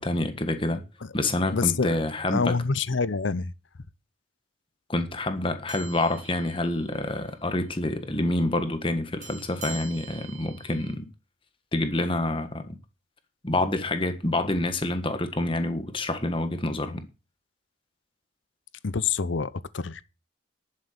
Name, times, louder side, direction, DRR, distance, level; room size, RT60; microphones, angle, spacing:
voice 1, 0.0-0.8 1.1-2.6 4.9-11.1 11.7-12.7 13.4-17.0, left 2 dB, 25° left, 1.6 m, -27 dB
voice 2, 1.5-2.0 2.3-3.5 18.8-20.0, left 5 dB, 75° left, 0.8 m, -26 dB
sound 1, 5.7-7.3 7.6-7.9 9.2-10.9, right 7 dB, 40° right, 2.0 m, -45 dB
11.5 x 7.4 x 6.7 m
head